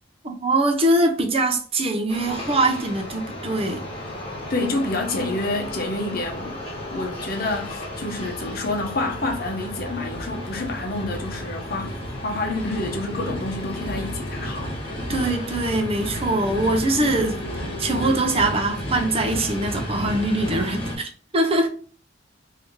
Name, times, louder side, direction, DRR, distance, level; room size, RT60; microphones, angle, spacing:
voice 1, 0.2-3.8 15.1-17.4 17.8-21.7, right 2 dB, 30° right, 0.6 m, -22 dB
sound 1, 2.1-21.0, left 1 dB, 30° left, 1.3 m, -32 dB
voice 2, 4.5-6.6 6.9-14.8 15.1-15.3, left 2 dB, 55° left, 0.8 m, -28 dB
3.3 x 2.7 x 3.5 m
head